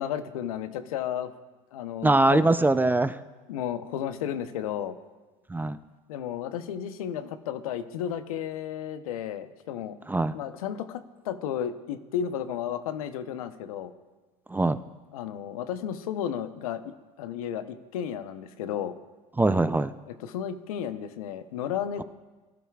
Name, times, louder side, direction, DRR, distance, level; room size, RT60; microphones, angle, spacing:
voice 1, 0.0-1.3 1.7-2.4 3.5-5.0 6.1-10.0 10.3-13.9 15.1-16.8 17.2-18.9 20.1-22.0, left 9 dB, 80° left, 10 dB, 0.9 m, -33 dB
voice 2, 2.0-3.2 5.5-5.8 10.1-10.3 14.5-14.8 19.4-19.9, right 2 dB, 10° right, 12 dB, 0.5 m, -22 dB
21.5 x 12.5 x 2.4 m, 1.2 s
hypercardioid pair, 80°, 18 cm